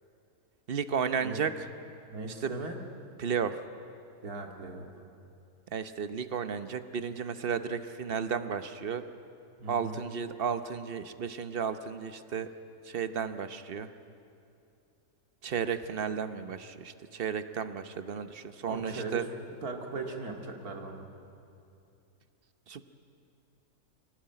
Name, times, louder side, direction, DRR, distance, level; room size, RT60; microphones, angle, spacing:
voice 1, 0.7-1.7 2.4-2.5 3.2-3.6 5.7-9.0 9.7-12.5 12.8-13.9 15.4-19.2 22.7-22.8, right 6 dB, 45° right, 11 dB, 0.9 m, -33 dB
voice 2, 2.1-2.8 4.2-4.9 9.6-10.0 18.6-19.3 19.6-21.1, right 3 dB, 70° right, 2 dB, 2.6 m, -38 dB
23.5 x 18.0 x 9.0 m, 2.7 s
omnidirectional pair, 1.7 m